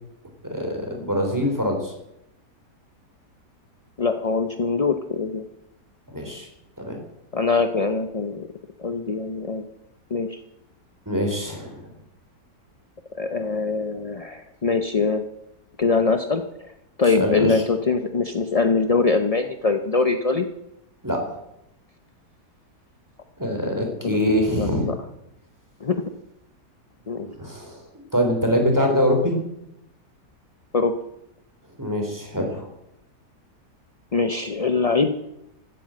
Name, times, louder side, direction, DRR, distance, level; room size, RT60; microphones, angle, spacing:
voice 1, 0.5-1.9 6.1-6.5 6.8-7.0 11.1-11.9 17.2-17.6 21.0-21.2 23.4-24.8 27.2-27.8 28.1-29.3 31.8-32.7, equal, 10° right, 2 dB, 3.6 m, -24 dB
voice 2, 4.0-5.4 7.3-8.5 8.8-9.6 10.1-10.4 13.1-15.2 15.8-16.7 17.0-20.5 24.0-24.2 24.6-25.0 25.8-26.0 27.1-27.3 30.7-30.9 34.1-35.1, left 4 dB, 40° left, 7 dB, 0.5 m, -23 dB
15.5 x 9.4 x 7.6 m, 0.83 s
omnidirectional pair, 1.8 m